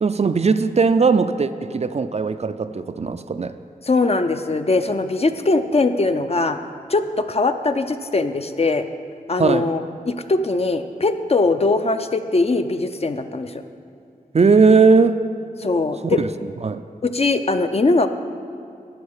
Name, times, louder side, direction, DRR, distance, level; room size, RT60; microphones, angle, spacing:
voice 1, 0.0-3.6 9.4-9.7 14.3-15.2 16.2-16.3 16.6-16.8, right 4 dB, 45° right, 11 dB, 0.4 m, -18 dB
voice 2, 3.9-6.6 6.9-8.9 9.3-13.6 15.6-16.2 17.0-18.1, left 3 dB, 40° left, 8 dB, 0.5 m, -21 dB
12.5 x 4.7 x 8.7 m, 2.5 s
wide cardioid pair, 95°, 15 cm